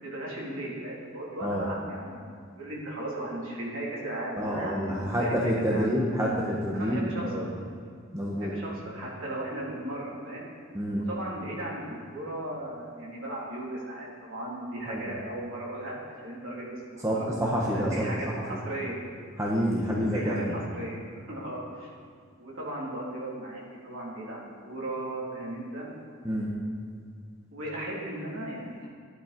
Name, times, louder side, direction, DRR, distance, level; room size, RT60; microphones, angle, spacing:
voice 1, 0.0-2.3 2.6-5.9 6.7-7.5 8.4-10.5 10.9-16.0 16.2-19.0 20.0-21.9 22.4-25.9 27.5-28.9, right 1 dB, 65° right, -5 dB, 3.7 m, -36 dB
voice 2, 4.4-7.5 8.1-8.5 10.7-11.0 14.8-15.0 17.0-18.0 19.4-20.4 26.2-26.5, equal, 15° right, -4 dB, 1.4 m, -28 dB
13.5 x 11.5 x 5.4 m, 2.3 s
head